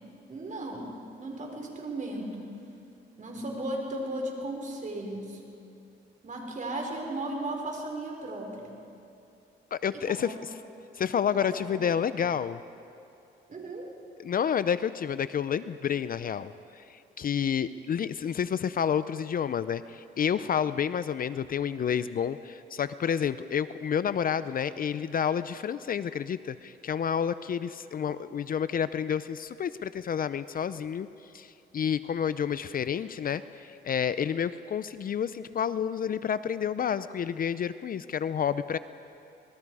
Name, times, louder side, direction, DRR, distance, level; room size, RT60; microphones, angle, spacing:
voice 1, 0.3-2.5 3.2-5.4 6.2-8.7 10.1-10.4 11.4-12.0 13.5-13.9 28.0-28.2, right 1 dB, 40° right, 1 dB, 4.9 m, -36 dB
voice 2, 9.7-10.4 10.9-12.6 14.2-31.1 31.3-38.8, left 8 dB, 45° left, 14 dB, 0.6 m, -29 dB
26.5 x 20.5 x 4.9 m, 2.7 s
cardioid pair, 90°, 20 cm